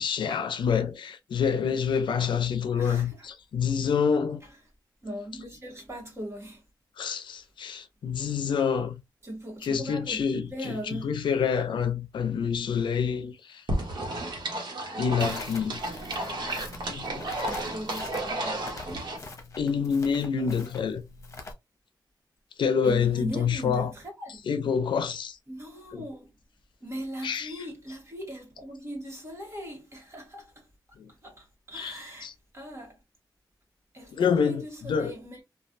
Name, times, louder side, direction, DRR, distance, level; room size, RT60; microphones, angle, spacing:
voice 1, 0.0-4.4 7.0-9.0 9.6-13.6 15.0-15.8 16.9-17.2 19.6-21.0 22.6-23.9 24.5-25.4 25.9-26.0 27.2-27.5 31.0-31.1 31.7-32.0 32.2-32.3 34.1-35.1, left 6 dB, 80° left, 0.5 m, -27 dB
voice 2, 2.6-3.3 4.4-4.6 5.0-6.6 9.2-11.2 16.1-16.4 17.4-19.2 20.4-20.8 22.8-24.4 25.5-26.3 26.8-30.7 31.1-33.0 33.9-35.4, equal, 35° right, 1.4 m, -40 dB
sound 1, 13.7-19.2, right 1 dB, 70° right, 1.1 m, -32 dB
Crackle, 15.2-21.5, left 3 dB, 40° left, 0.9 m, -44 dB
3.1 x 2.4 x 2.5 m
wide cardioid pair, 105°, 8 cm